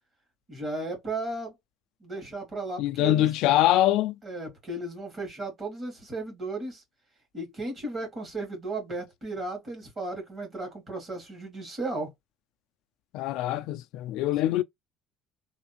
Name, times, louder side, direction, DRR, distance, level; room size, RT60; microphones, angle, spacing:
voice 1, 0.5-1.5 2.0-3.3 4.2-6.8 7.3-12.1, right 2 dB, 25° right, 1.9 m, -35 dB
voice 2, 2.8-4.1 13.1-14.6, left 14 dB, 65° left, 0.3 m, -24 dB
3.3 x 2.5 x 2.9 m
cardioid pair, 170°, 0 cm